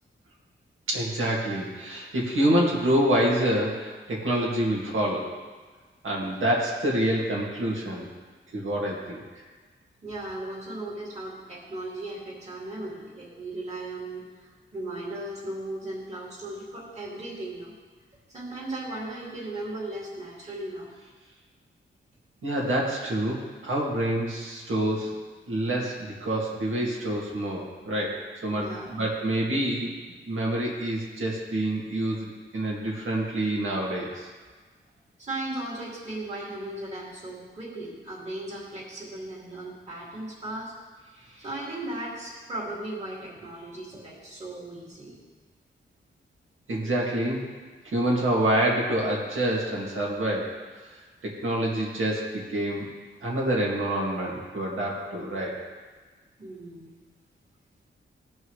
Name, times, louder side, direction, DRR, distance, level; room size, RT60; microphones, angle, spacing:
voice 1, 0.9-5.3 6.0-8.1 8.5-9.2 22.4-25.2 25.5-29.9 30.3-34.3 46.7-47.4 47.8-50.5 50.8-50.9 51.2-52.9 53.2-55.6, right 1 dB, 70° right, -3 dB, 2.2 m, -27 dB
voice 2, 10.0-17.7 18.3-20.9 28.5-28.9 35.2-40.7 41.4-45.2 56.4-57.0, right 1 dB, 30° right, -6 dB, 2.6 m, -37 dB
16.0 x 5.4 x 3.3 m, 1.4 s
wide cardioid pair, 120°, 21 cm